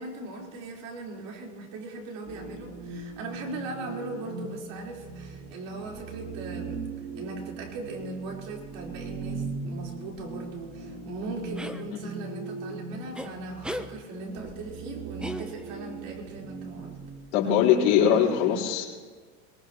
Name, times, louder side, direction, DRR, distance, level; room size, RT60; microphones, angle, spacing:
voice 1, 0.0-6.9 7.1-17.0, right 3 dB, 50° right, -1 dB, 4.4 m, -39 dB
sound 1, 2.3-17.2, right 3 dB, 70° right, 4.5 m, -39 dB
sound 2, 11.6-11.8 13.1-13.3 13.6-13.9 15.2-15.9, equal, ahead, 0.7 m, -36 dB
voice 2, 17.3-18.8, left 9 dB, 65° left, -6 dB, 4.4 m, -21 dB
22.5 x 20.0 x 3.0 m, 1.5 s
supercardioid pair, 125°, 41 cm